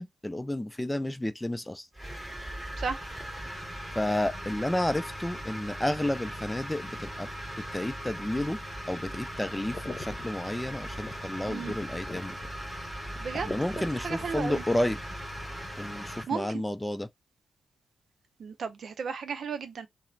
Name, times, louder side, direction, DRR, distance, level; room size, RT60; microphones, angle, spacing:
voice 1, 0.0-1.9 4.0-7.3 7.7-8.6 8.9-12.3 13.3-15.0 15.8-17.1, left 1 dB, 10° left, 0.4 m, -31 dB
sound 1, 1.9-16.2, equal, 10° right, 1.8 m, -39 dB
sound 2, 9.3-16.1, left 2 dB, 35° left, 0.9 m, -45 dB
voice 2, 13.2-13.5 14.0-14.6 16.3-16.6 18.4-19.9, right 6 dB, 70° right, 0.5 m, -34 dB
2.9 x 2.0 x 2.5 m
cardioid pair, 65°, 0 cm